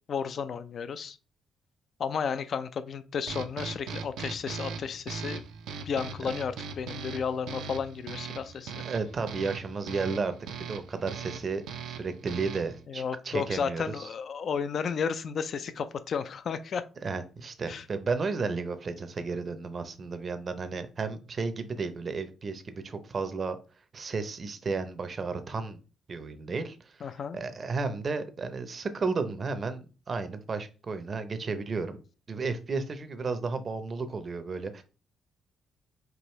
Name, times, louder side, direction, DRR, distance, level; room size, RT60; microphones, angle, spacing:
voice 1, 0.1-1.2 2.0-5.4 5.9-8.7 12.9-16.8 17.7-17.8 27.0-27.4, left 6 dB, 55° left, 0.4 m, -33 dB
sound 1, 3.3-12.8, right 6 dB, 85° right, 0.5 m, -40 dB
voice 2, 8.8-14.1 17.0-23.6 23.9-25.8 26.1-27.1 27.3-29.8 30.1-32.0 32.3-34.8, right 4 dB, 40° right, 0.6 m, -33 dB
4.7 x 2.6 x 3.1 m
cardioid pair, 90°, 0 cm